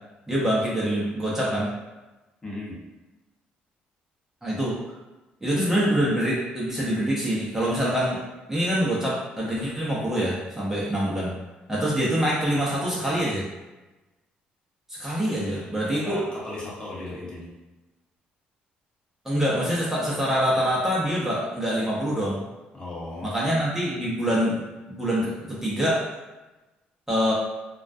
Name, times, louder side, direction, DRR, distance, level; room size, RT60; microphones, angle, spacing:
voice 1, 0.3-1.7 4.4-4.9 5.4-8.2 8.5-11.3 11.7-13.4 14.9-16.2 19.2-22.4 23.2-24.6 24.9-26.0 27.1-27.3, equal, 10° right, -7 dB, 0.7 m, -25 dB
voice 2, 2.4-2.8 15.2-17.5 22.7-23.3, left 2 dB, 25° left, -6 dB, 0.9 m, -37 dB
2.3 x 2.1 x 2.5 m, 1.1 s
supercardioid pair, 80°, 4 cm